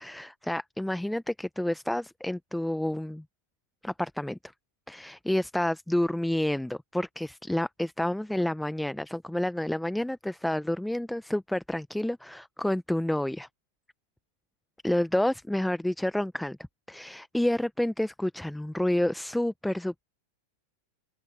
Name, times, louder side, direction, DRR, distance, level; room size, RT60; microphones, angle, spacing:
voice 1, 0.0-3.2 3.8-4.5 4.9-13.5 14.8-16.6 16.9-20.0, left 1 dB, 5° left, 1.2 m, -29 dB
open air
figure-of-eight pair, 90°, 0 cm